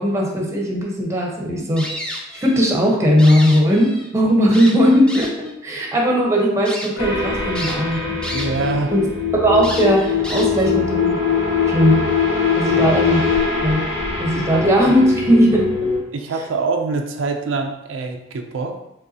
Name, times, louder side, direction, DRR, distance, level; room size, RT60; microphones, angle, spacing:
voice 1, 0.0-1.9 2.3-8.2 8.9-9.0 9.3-11.2 11.7-12.0 12.5-13.2 13.6-13.9 14.2-15.9, equal, 15° right, -1 dB, 0.9 m, -18 dB
sound 1, 1.8-2.7 3.0-4.1 4.5-5.5 6.1-6.2 6.7-6.9 7.6-8.7 9.0-9.1 9.6-10.7, equal, 5° left, 0.5 m, -31 dB
sound 2, 7.0-16.0, left 5 dB, 75° left, 1.4 m, -22 dB
voice 2, 8.3-8.9 12.7-13.0 14.3-14.9 16.1-18.8, right 3 dB, 70° right, 3 dB, 0.4 m, -25 dB
5.3 x 3.6 x 2.7 m, 0.86 s
head